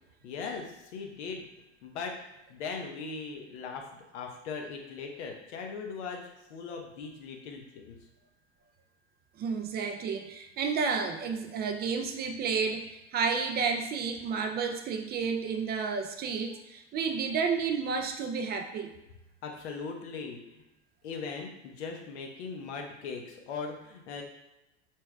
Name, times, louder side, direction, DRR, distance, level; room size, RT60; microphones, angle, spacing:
voice 1, 0.2-1.5 1.8-2.1 2.5-8.0 19.4-20.6 21.0-24.2, left 5 dB, 75° left, 2 dB, 1.0 m, -39 dB
voice 2, 9.4-18.9, right 5 dB, 30° right, 5 dB, 0.4 m, -31 dB
4.5 x 4.5 x 2.3 m, 0.93 s
hypercardioid pair, 105°, 34 cm